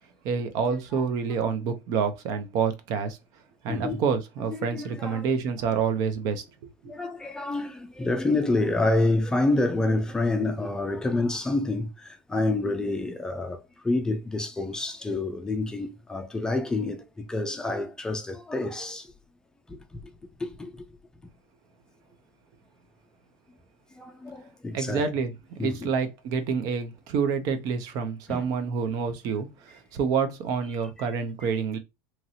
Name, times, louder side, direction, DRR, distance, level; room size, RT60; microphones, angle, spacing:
voice 1, 0.2-3.2 3.6-6.4 6.8-6.9 24.7-25.3 25.6-31.8, right 6 dB, 55° right, 0.6 m, -28 dB
voice 2, 3.7-4.0 4.5-5.3 6.8-19.1 19.7-20.0 20.4-20.9 24.0-25.1 25.6-25.9 28.3-28.5 31.0-31.1 31.4-31.5, left 2 dB, 10° left, 0.4 m, -28 dB
2.9 x 2.6 x 2.8 m
supercardioid pair, 140°, 7 cm